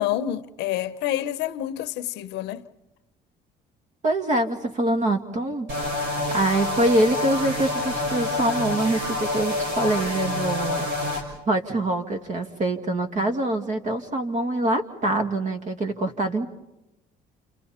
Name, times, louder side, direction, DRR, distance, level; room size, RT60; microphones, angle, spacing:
voice 1, 0.0-2.7, left 12 dB, 90° left, 0.9 m, -28 dB
voice 2, 4.0-5.7 6.3-16.5, right 1 dB, 45° right, 2.3 m, -25 dB
sound 1, 5.7-11.2, left 1 dB, 80° right, 6.0 m, -27 dB
29.5 x 29.5 x 4.3 m
cardioid pair, 110°, 17 cm